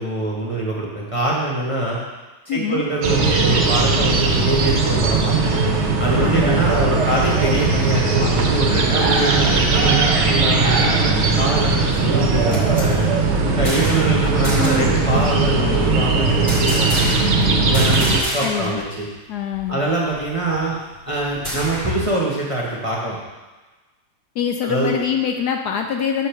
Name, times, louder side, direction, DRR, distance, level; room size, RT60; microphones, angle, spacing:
voice 1, 0.0-2.0 2.5-5.5 6.0-13.0 13.6-17.0 17.7-19.1 19.7-20.7 21.1-23.2 24.6-25.0, right 1 dB, 25° right, -4 dB, 0.9 m, -23 dB
voice 2, 2.5-2.8 6.2-6.6 18.4-18.8 19.3-19.8 24.4-26.3, left 8 dB, 75° left, 4 dB, 1.0 m, -24 dB
sound 1, 3.0-18.2, right 3 dB, 50° right, 0.9 m, -18 dB
sound 2, 12.3-14.1 14.4-14.9 16.5-17.4 17.7-18.8 19.1-19.2 19.5-22.1, equal, 35° left, 2.1 m, -29 dB
6.9 x 5.0 x 5.8 m, 1.2 s
omnidirectional pair, 2.0 m